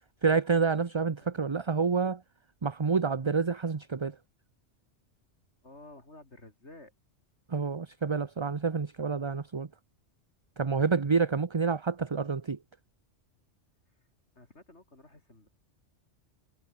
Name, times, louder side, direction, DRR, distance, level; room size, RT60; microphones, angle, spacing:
voice 1, 0.2-2.2 2.6-4.2 7.5-9.7 10.6-12.6, right 5 dB, 30° right, 0.7 m, -28 dB
voice 2, 5.6-6.9 14.0-14.1 14.3-15.5, left 2 dB, 65° left, 6.1 m, -52 dB
omnidirectional pair, 1.2 m